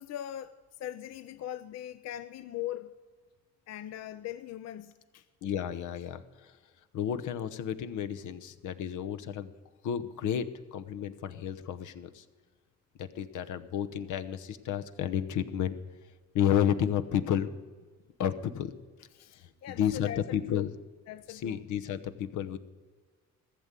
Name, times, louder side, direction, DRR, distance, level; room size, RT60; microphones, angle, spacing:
voice 1, 0.0-2.9 3.7-5.3 19.1-20.6 21.1-21.6, left 12 dB, 60° left, 0.5 m, -40 dB
voice 2, 5.4-6.2 6.9-9.5 9.8-12.2 13.0-15.8 16.3-17.5 18.2-18.7 19.7-20.7 21.3-22.6, left 9 dB, 75° left, 0.9 m, -31 dB
15.0 x 6.9 x 8.9 m
cardioid pair, 90°, 30 cm